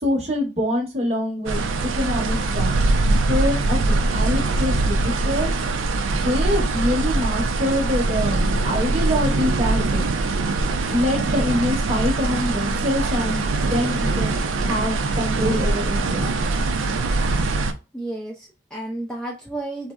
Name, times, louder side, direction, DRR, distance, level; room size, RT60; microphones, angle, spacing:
voice 1, 0.0-2.7 3.3-5.5 6.2-10.3 10.9-16.3, left 1 dB, 35° right, 0 dB, 0.8 m, -25 dB
sound 1, 1.5-17.7, right 2 dB, 85° right, 0.4 m, -22 dB
voice 2, 17.9-19.9, right 1 dB, 5° left, -2 dB, 0.3 m, -32 dB
3.7 x 2.0 x 2.2 m, 0.29 s
head